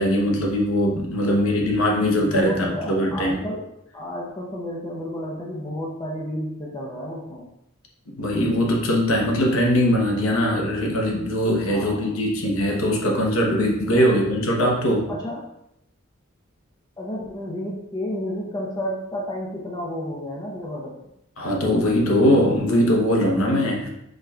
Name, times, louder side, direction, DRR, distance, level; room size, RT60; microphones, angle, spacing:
voice 1, 0.0-3.4 8.1-15.1 21.4-23.9, equal, 75° left, 0 dB, 0.9 m, -21 dB
voice 2, 1.2-1.5 2.2-3.7 3.9-7.5 11.7-12.2 13.9-14.1 15.1-15.5 17.0-21.0, left 1 dB, 20° left, -2 dB, 0.7 m, -32 dB
5.1 x 4.0 x 2.3 m, 0.81 s
head